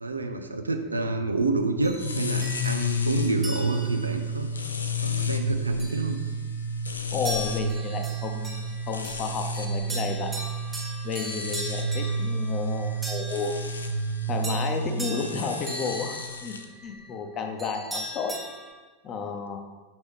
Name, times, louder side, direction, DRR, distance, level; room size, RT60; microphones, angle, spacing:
voice 1, 0.0-4.5 5.0-6.2, right 2 dB, 80° right, 6 dB, 0.5 m, -28 dB
sound 1, 1.8-4.1 4.9-5.3 5.8-6.6 7.2-18.7, equal, 5° right, 1.4 m, -39 dB
sound 2, 1.9-16.6, right 1 dB, 75° left, 0.5 m, -30 dB
voice 2, 7.1-10.3 11.0-13.6 14.3-16.6 16.8-18.4 19.0-19.6, left 5 dB, 30° left, 4 dB, 0.8 m, -32 dB
6.1 x 5.3 x 3.5 m, 1.3 s
figure-of-eight pair, 90°, 0 cm